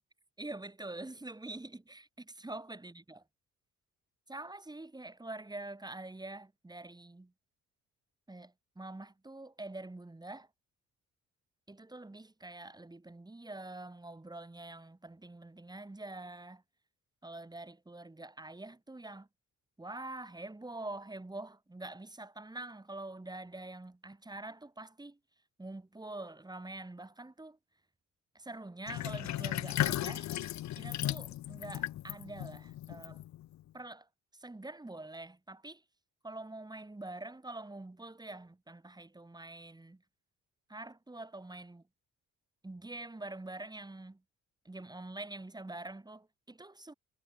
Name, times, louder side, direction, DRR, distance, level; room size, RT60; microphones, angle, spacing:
voice 1, 0.4-3.2 4.3-7.3 8.3-10.5 11.7-16.6 17.2-19.3 19.8-25.2 25.6-27.6 28.3-30.3 30.7-33.2 33.7-35.8 36.2-40.0 40.7-41.8 42.6-44.2 44.6-46.9, right 2 dB, 15° right, 3.2 m, -45 dB
Sink (filling or washing), 28.9-33.6, left 13 dB, 65° left, 0.8 m, -36 dB
cardioid pair, 90°, 30 cm